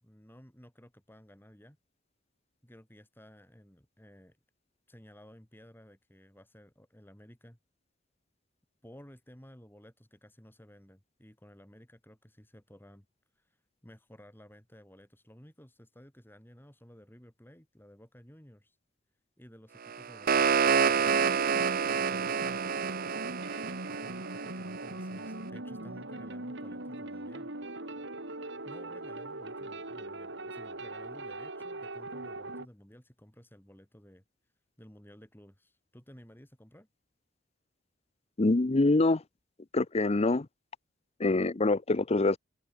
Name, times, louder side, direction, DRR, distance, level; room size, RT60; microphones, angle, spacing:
voice 1, 0.0-1.8 2.6-4.4 4.9-7.6 8.8-13.1 13.3-18.8 19.4-21.3 21.9-22.8 23.9-27.5 28.6-34.2 34.8-36.9, equal, 10° left, 4.5 m, -55 dB
sound 1, 19.9-24.9, right 6 dB, 50° right, 0.7 m, -28 dB
sound 2, 20.9-32.7, right 2 dB, 65° right, 4.0 m, -40 dB
voice 2, 38.4-39.2 39.7-40.5 41.2-42.4, left 2 dB, 35° left, 0.7 m, -25 dB
head